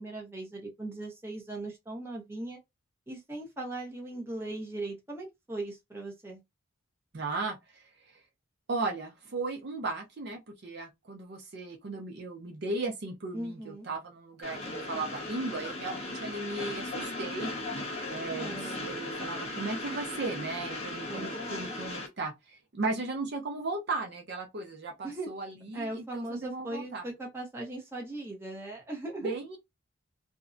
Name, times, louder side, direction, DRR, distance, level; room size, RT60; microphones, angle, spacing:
voice 1, 0.0-2.6 3.1-6.4 13.3-13.9 18.3-18.9 21.1-21.8 25.0-25.3 25.7-29.3, right 2 dB, 10° right, 0.7 m, -39 dB
voice 2, 7.1-7.6 8.7-17.5 18.1-27.0 29.2-29.6, right 3 dB, 50° right, 0.5 m, -36 dB
Train, 14.4-22.1, left 2 dB, 30° left, 0.7 m, -37 dB
2.5 x 2.0 x 2.4 m
head